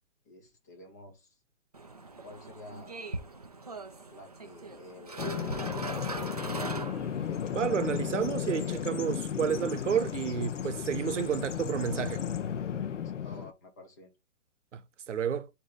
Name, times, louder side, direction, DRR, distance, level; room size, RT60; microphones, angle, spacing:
voice 1, 0.2-1.4 2.2-2.9 4.1-6.6 13.2-14.1, left 2 dB, 15° left, 0.7 m, -50 dB
sound 1, 1.7-7.5, right 3 dB, 30° right, 0.4 m, -40 dB
Bird vocalization bird call bird song, 5.2-13.5, left 8 dB, 65° left, 0.9 m, -34 dB
voice 2, 7.5-12.2 14.7-15.5, right 8 dB, 65° right, 0.9 m, -31 dB
8.2 x 2.9 x 3.9 m
hypercardioid pair, 170°, 39 cm